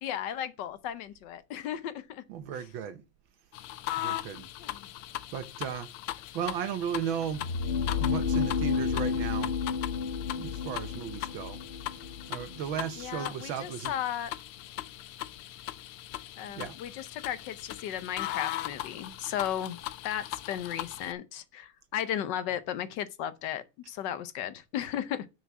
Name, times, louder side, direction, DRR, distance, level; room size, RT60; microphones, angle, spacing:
voice 1, 0.0-2.2 4.4-4.9 13.0-14.3 16.4-19.8 20.0-25.3, left 10 dB, 65° left, 1.3 m, -35 dB
voice 2, 2.3-3.0 3.9-4.5 5.3-5.9 6.3-7.4 8.0-9.6 10.3-11.6 12.0-14.0 16.6-16.8, right 8 dB, 70° right, 1.6 m, -35 dB
sound 1, 3.5-21.1, left 15 dB, 90° left, 1.5 m, -39 dB
sound 2, 7.2-13.1, left 6 dB, 40° left, 1.2 m, -31 dB
7.1 x 6.3 x 5.9 m
omnidirectional pair, 2.3 m